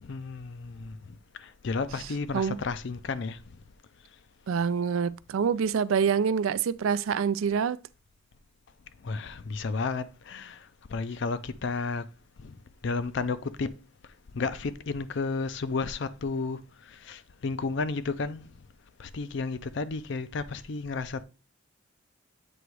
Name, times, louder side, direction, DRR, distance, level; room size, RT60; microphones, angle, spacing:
voice 1, 0.0-3.6 9.0-12.1 12.4-18.6 19.0-21.2, left 4 dB, 60° left, 0.5 m, -33 dB
voice 2, 4.5-7.8, right 6 dB, 80° right, 0.4 m, -26 dB
7.9 x 3.0 x 4.6 m
head